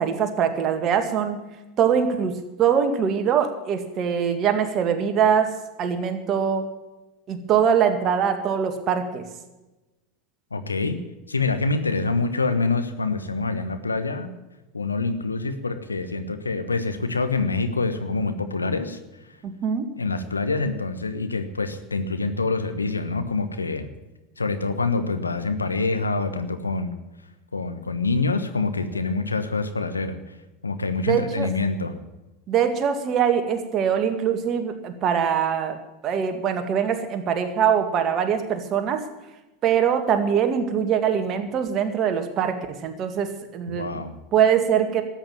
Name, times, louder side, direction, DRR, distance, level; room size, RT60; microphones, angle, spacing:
voice 1, 0.0-1.4 1.8-5.5 5.8-6.7 7.3-9.2 19.4-19.9 31.1-31.5 32.5-35.8 36.0-39.0 39.6-43.9 44.3-45.0, right 8 dB, 40° right, 7 dB, 2.0 m, -23 dB
voice 2, 10.5-11.0 11.3-14.3 14.7-19.0 20.0-23.9 24.4-26.9 27.5-30.3 30.6-32.0 43.7-44.1, left 3 dB, 90° left, 9 dB, 1.2 m, -26 dB
13.5 x 8.9 x 9.2 m, 1.1 s
figure-of-eight pair, 85°, 0 cm